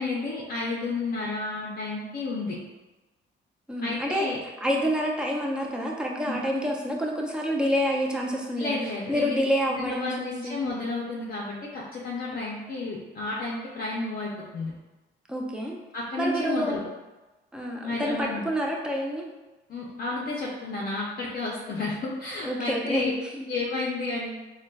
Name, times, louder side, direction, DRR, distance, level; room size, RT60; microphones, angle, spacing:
voice 1, 0.0-2.6 3.8-4.4 6.2-6.4 8.6-9.3 9.7-14.7 15.9-16.8 17.8-18.4 19.7-23.1 23.5-24.4, left 3 dB, 50° left, -4 dB, 0.5 m, -31 dB
voice 2, 3.7-4.3 4.6-8.8 9.1-10.6 15.3-15.8 16.2-16.9 17.5-19.2 22.4-23.5, equal, 5° right, -1 dB, 0.5 m, -28 dB
3.8 x 2.2 x 2.2 m, 1.1 s
cardioid pair, 90°, 20 cm